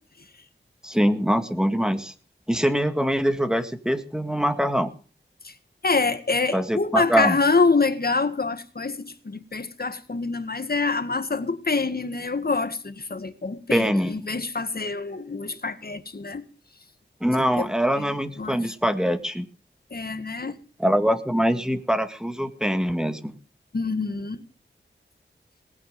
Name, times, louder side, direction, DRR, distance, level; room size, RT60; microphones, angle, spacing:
voice 1, 0.8-2.1 2.5-4.9 6.5-7.4 13.7-14.1 17.2-19.5 20.8-23.3, equal, 5° right, 2.0 m, -23 dB
voice 2, 5.8-16.5 17.4-17.7 18.0-18.1 18.4-18.6 19.9-20.6 23.7-24.4, left 4 dB, 50° left, 1.9 m, -26 dB
19.5 x 8.7 x 6.8 m
wide cardioid pair, 70°, 20 cm